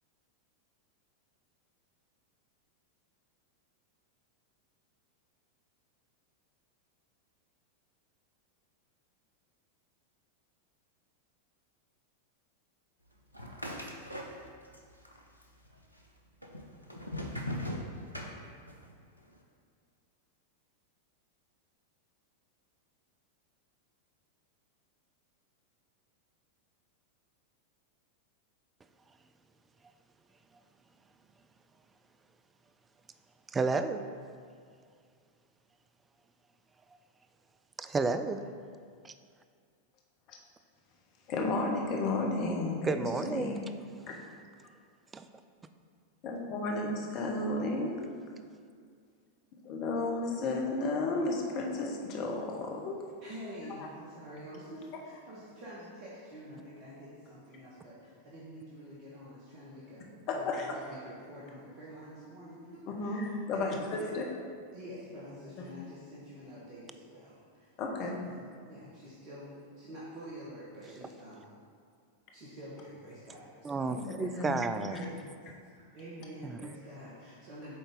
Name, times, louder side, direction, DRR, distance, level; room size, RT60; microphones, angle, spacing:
sound 1, 13.3-14.8 15.0-15.8 16.4-18.9, left 1 dB, 90° left, 0.6 m, -39 dB
voice 1, 33.5-34.0 36.9-37.0 37.8-38.5 39.0-39.1 42.8-43.5 45.1-45.3 70.9-71.1 73.6-75.0 76.4-76.8, right 3 dB, 15° right, 9 dB, 0.3 m, -32 dB
voice 2, 41.3-43.7 44.1-44.2 46.2-48.0 49.6-53.0 60.3-60.7 63.0-64.2 65.6-65.7 67.8-68.2 74.0-75.0, left 2 dB, 40° left, 0 dB, 0.9 m, -33 dB
voice 3, 53.2-64.1 64.7-67.7 68.0-69.5 69.8-71.4 72.3-74.0 74.9-75.2 75.8-77.7, equal, 40° right, -8 dB, 1.3 m, -47 dB
7.5 x 3.9 x 3.6 m, 2.1 s
figure-of-eight pair, 90°, 0 cm